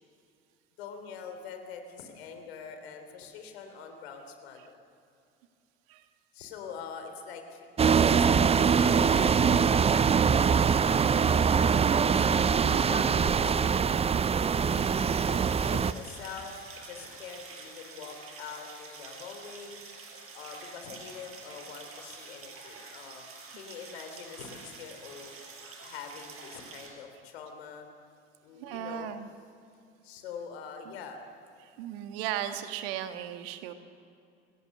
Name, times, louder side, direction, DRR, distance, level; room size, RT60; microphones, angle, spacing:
voice 1, 0.8-4.8 6.3-11.7 12.0-12.5 12.9-13.8 14.3-14.8 15.3-19.8 20.3-23.2 23.5-25.4 25.8-27.9 28.4-29.1 30.0-31.2, left 6 dB, 70° left, 6 dB, 3.4 m, -44 dB
sound 1, 7.8-15.9, right 6 dB, 20° right, 0.6 m, -23 dB
voice 2, 12.6-13.1 20.0-20.1 28.6-29.3 30.8-31.0 31.6-33.7, right 10 dB, 65° right, 8 dB, 1.7 m, -37 dB
sound 2, 14.6-26.9, right 4 dB, 45° right, 5.4 m, -47 dB
29.0 x 18.0 x 6.7 m, 2.5 s
figure-of-eight pair, 65°, 32 cm